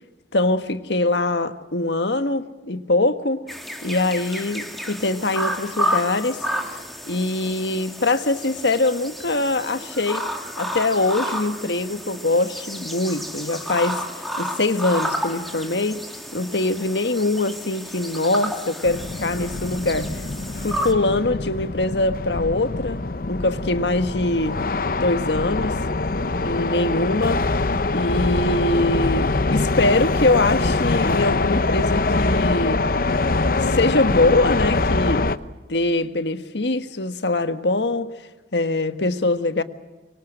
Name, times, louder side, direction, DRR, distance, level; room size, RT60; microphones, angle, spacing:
voice 1, 0.3-3.4 3.8-6.4 6.7-10.3 10.6-16.0 16.3-20.1 20.6-23.0 23.3-24.6 24.9-25.8 26.4-27.4 27.9-32.8 33.6-35.3 35.7-38.1 38.5-39.6, left 2 dB, 75° left, 1.5 m, -23 dB
sound 1, 3.5-20.9, equal, ahead, 2.3 m, -31 dB
sound 2, 18.8-35.4, left 3 dB, 55° left, 0.8 m, -23 dB
25.0 x 24.0 x 7.7 m
head